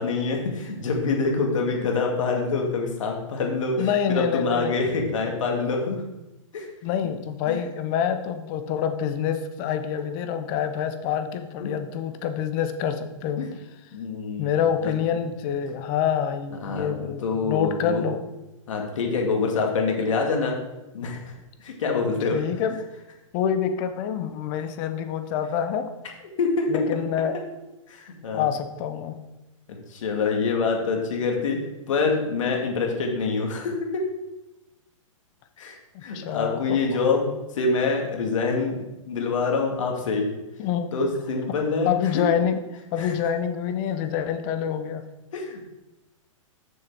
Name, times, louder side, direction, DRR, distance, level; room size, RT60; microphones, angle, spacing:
voice 1, 0.0-6.0 6.5-6.7 7.5-7.6 11.6-11.7 13.4-13.6 13.9-14.9 16.6-18.1 18.7-20.6 20.9-21.3 21.6-22.4 26.4-26.7 27.9-28.5 29.9-31.6 31.9-34.1 35.6-37.3 37.5-40.3 40.9-42.2 43.0-43.1 45.3-45.7, left 4 dB, 70° left, 1 dB, 2.2 m, -26 dB
voice 2, 3.8-4.7 6.8-13.5 14.4-18.2 22.3-22.8 23.3-25.9 26.7-27.4 28.3-29.2 35.9-36.8 40.6-40.9 41.8-42.6 42.9-45.0, left 8 dB, 35° left, 8 dB, 0.9 m, -26 dB
6.6 x 6.5 x 4.7 m, 0.99 s
hypercardioid pair, 135°, 17 cm